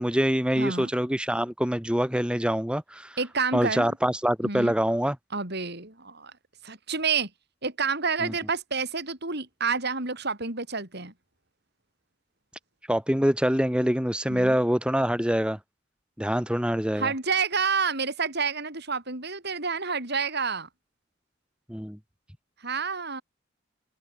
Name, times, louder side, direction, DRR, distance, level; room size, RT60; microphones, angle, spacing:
voice 1, 0.0-3.2 3.5-5.2 8.2-8.3 12.9-15.6 16.2-17.1 21.7-22.0, equal, 5° right, 2.7 m, -25 dB
voice 2, 0.6-0.9 3.2-4.0 4.4-4.7 5.3-6.3 6.6-7.3 7.6-11.1 14.3-14.6 17.0-20.7 22.6-23.2, right 5 dB, 55° right, 7.5 m, -29 dB
open air
head